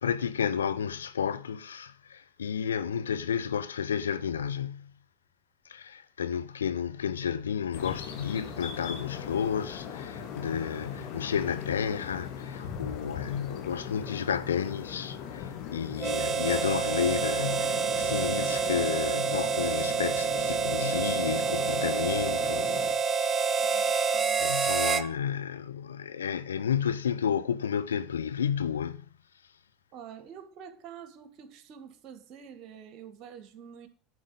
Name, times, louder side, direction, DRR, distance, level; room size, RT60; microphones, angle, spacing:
voice 1, 0.0-4.9 5.7-22.7 24.4-29.0, left 7 dB, 90° left, 0.6 m, -31 dB
sound 1, 7.7-22.9, left 8 dB, 60° left, 1.9 m, -39 dB
Harmonica, 16.0-25.1, right 6 dB, 35° right, 0.7 m, -28 dB
voice 2, 23.6-24.4 29.9-33.9, right 8 dB, 50° right, 1.9 m, -47 dB
10.5 x 5.0 x 7.9 m
hypercardioid pair, 85°, 0 cm